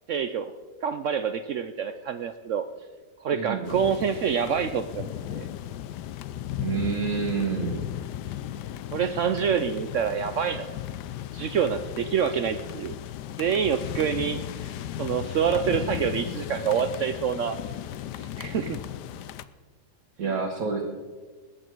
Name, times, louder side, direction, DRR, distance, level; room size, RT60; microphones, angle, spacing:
voice 1, 0.1-0.5 0.8-2.7 3.2-5.5 8.9-10.7 11.3-13.0 13.4-17.6 18.2-18.8 20.3-20.4, right 7 dB, 70° right, 10 dB, 0.7 m, -27 dB
voice 2, 3.3-3.7 6.6-7.8 20.2-20.8, right 5 dB, 55° right, 0 dB, 1.7 m, -28 dB
sound 1, 3.6-19.4, left 11 dB, 75° left, 1.2 m, -35 dB
20.5 x 8.8 x 4.5 m, 1.4 s
omnidirectional pair, 1.8 m